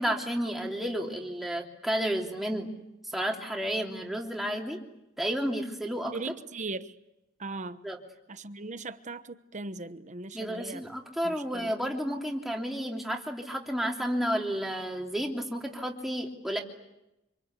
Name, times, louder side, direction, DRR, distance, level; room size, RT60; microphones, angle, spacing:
voice 1, 0.0-2.7 3.1-4.8 5.2-6.1 7.8-8.0 10.3-16.6, equal, ahead, 3.1 m, -31 dB
voice 2, 6.1-6.9 7.4-7.9 8.3-10.8 11.2-11.7, right 3 dB, 40° right, 1.1 m, -39 dB
26.5 x 26.0 x 8.3 m
head